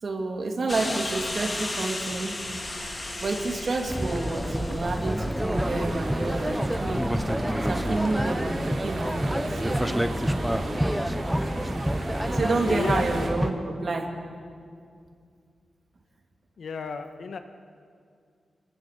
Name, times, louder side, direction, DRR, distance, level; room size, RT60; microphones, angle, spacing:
voice 1, 0.0-2.4 3.2-7.0 7.7-10.0 10.2-10.4 12.3-14.1, right 3 dB, 45° right, 1 dB, 3.1 m, -29 dB
voice 2, 0.7-1.1 7.7-8.1 12.4-13.1 16.6-17.4, left 5 dB, 65° left, 6 dB, 1.7 m, -35 dB
sound 1, 0.7-8.1, left 2 dB, 25° left, 2.6 m, -36 dB
sound 2, 3.9-13.5, equal, ahead, 0.6 m, -28 dB
sound 3, 5.5-13.3, right 3 dB, 70° right, 4.5 m, -37 dB
27.5 x 21.0 x 7.0 m, 2.3 s
wide cardioid pair, 175°, 0 cm